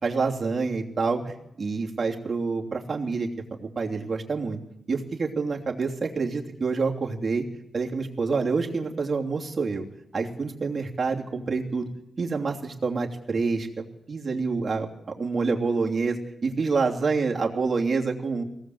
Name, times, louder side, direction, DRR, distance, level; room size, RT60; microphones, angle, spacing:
voice 1, 0.0-3.3 3.6-4.6 4.9-7.4 7.7-9.8 10.1-11.9 12.2-14.9 15.2-18.4, right 4 dB, 40° right, 0 dB, 3.0 m, -27 dB
23.5 x 18.5 x 7.9 m, 0.84 s
wide cardioid pair, 125°, 0 cm